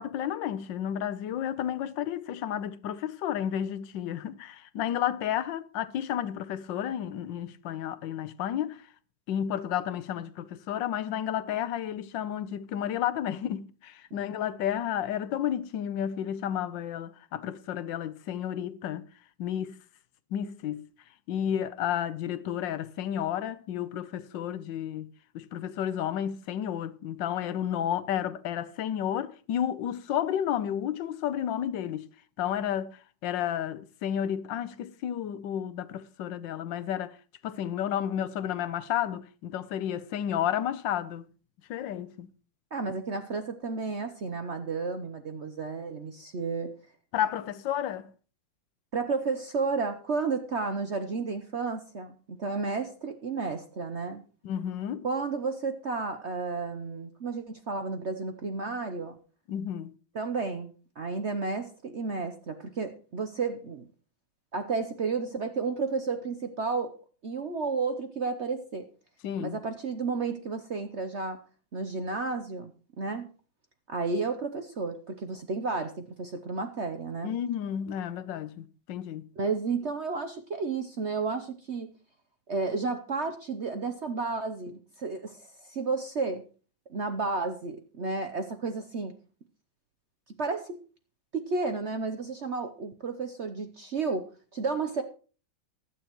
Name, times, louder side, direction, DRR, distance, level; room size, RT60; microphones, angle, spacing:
voice 1, 0.0-8.9 9.3-19.1 19.4-19.8 20.3-20.9 21.3-32.1 32.4-37.2 37.4-41.3 41.7-42.3 47.1-48.1 54.4-55.1 59.5-59.9 69.2-69.6 77.2-79.3, left 10 dB, 70° left, 1.3 m, -32 dB
voice 2, 42.7-46.7 48.9-54.2 55.0-59.2 60.1-63.9 64.5-66.9 67.2-68.9 69.4-71.4 71.7-72.7 73.0-73.3 73.9-77.3 79.4-81.9 82.5-86.4 86.9-89.1 90.4-90.8 91.3-94.3 94.5-95.0, right 4 dB, 55° right, 0.7 m, -32 dB
16.0 x 11.0 x 3.0 m
omnidirectional pair, 2.2 m